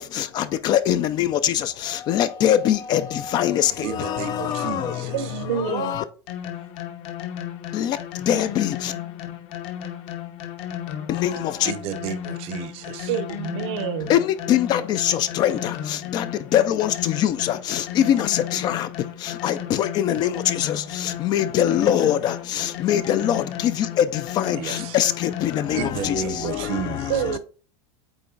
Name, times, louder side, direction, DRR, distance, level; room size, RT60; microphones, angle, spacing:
voice 1, 0.0-5.2 5.5-6.0 7.7-8.9 11.1-11.7 14.1-27.4, left 10 dB, 30° left, 0.4 m, -23 dB
voice 2, 3.8-5.3 11.6-13.1 24.5-25.0 25.8-27.2, right 9 dB, 40° right, 0.7 m, -32 dB
voice 3, 5.1-6.0 13.1-14.1 27.1-27.4, right 9 dB, 80° right, 0.9 m, -27 dB
sound 1, 6.3-25.9, left 10 dB, 45° left, 1.0 m, -34 dB
8.6 x 3.1 x 3.8 m
supercardioid pair, 165°, 15 cm